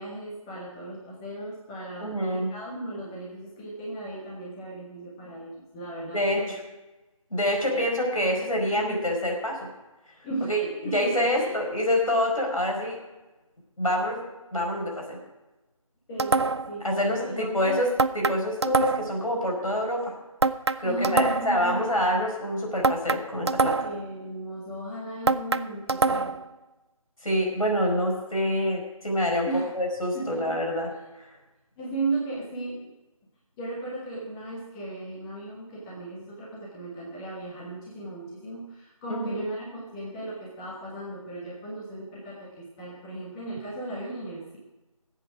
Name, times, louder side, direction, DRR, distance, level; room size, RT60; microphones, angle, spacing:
voice 1, 0.0-6.5 7.7-7.9 8.8-9.1 10.2-10.5 10.8-11.5 16.1-17.8 20.8-21.9 23.8-26.3 29.5-29.7 30.1-30.6 31.8-32.9 33.6-44.6, right 2 dB, 10° left, -5 dB, 1.3 m, -36 dB
voice 2, 2.0-2.5 6.1-6.6 7.3-9.7 10.5-10.7 10.9-13.0 13.8-14.2 14.5-15.2 16.8-20.1 20.8-23.9 27.2-29.5 29.7-30.9 31.2-31.3 39.1-39.5, equal, 80° left, 0 dB, 5.0 m, -26 dB
sound 1, 16.2-16.8 18.0-19.2 20.4-21.6 22.8-24.1 25.3-26.5, right 3 dB, 50° right, 0.5 m, -25 dB
19.0 x 8.3 x 4.8 m, 1.1 s
figure-of-eight pair, 160°, 18 cm